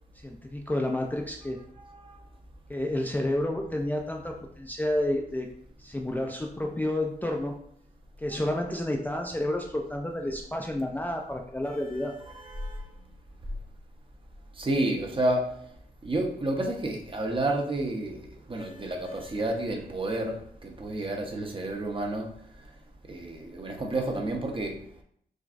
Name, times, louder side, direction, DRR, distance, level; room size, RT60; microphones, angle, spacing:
voice 1, 0.2-1.6 2.7-5.5 5.8-7.5 8.2-12.1, left 1 dB, 10° left, 1 dB, 0.4 m, -30 dB
voice 2, 12.3-12.7 14.6-15.4 16.0-18.2 18.5-20.3 20.6-22.3 23.1-24.7, right 1 dB, 30° right, 1 dB, 0.8 m, -30 dB
6.2 x 2.3 x 2.5 m, 0.66 s
wide cardioid pair, 90°, 16 cm